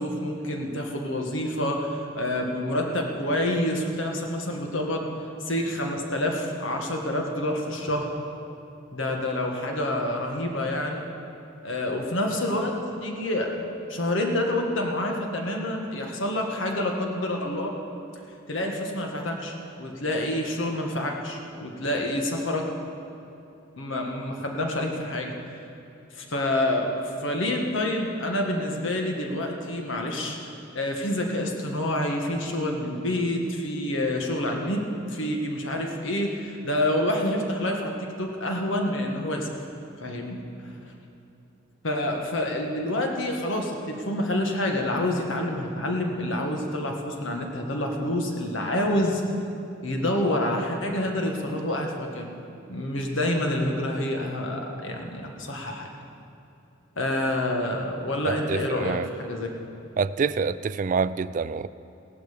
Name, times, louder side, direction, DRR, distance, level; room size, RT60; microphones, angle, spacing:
voice 1, 0.0-5.1 5.5-8.1 8.9-11.1 11.6-12.7 13.0-17.7 18.5-22.6 23.8-25.3 26.1-26.9 27.2-30.4 30.7-37.9 38.2-39.5 40.0-40.4 41.8-49.2 49.8-52.3 52.7-55.9 57.0-59.5, left 1 dB, 80° left, 1 dB, 1.6 m, -27 dB
voice 2, 58.2-59.1 60.0-61.7, right 5 dB, 40° right, 16 dB, 0.3 m, -27 dB
16.5 x 11.5 x 5.1 m, 2.8 s
head